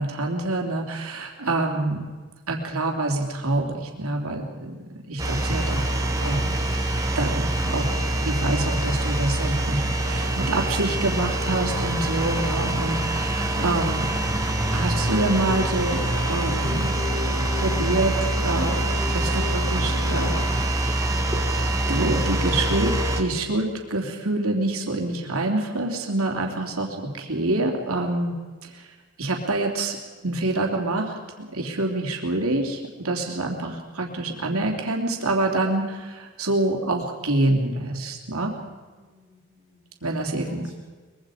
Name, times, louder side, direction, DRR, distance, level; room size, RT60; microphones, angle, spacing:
voice 1, 0.0-2.1 2.5-4.7 5.0-5.8 6.2-6.5 7.1-7.9 8.2-14.1 14.7-17.0 17.5-21.4 21.9-28.3 28.6-28.9 29.2-30.0 30.2-31.2 31.5-38.5 40.0-40.7, right 2 dB, 90° right, 1 dB, 3.2 m, -26 dB
voice 2, 4.7-5.3 38.9-39.9 40.1-40.7, left 1 dB, 35° left, -2 dB, 7.4 m, -52 dB
sound 1, 5.2-23.2, right 1 dB, 15° right, 1.7 m, -25 dB
Keyboard (musical), 15.1-20.5, left 3 dB, 80° left, 3.5 m, -36 dB
24.0 x 22.0 x 5.0 m, 1.4 s
head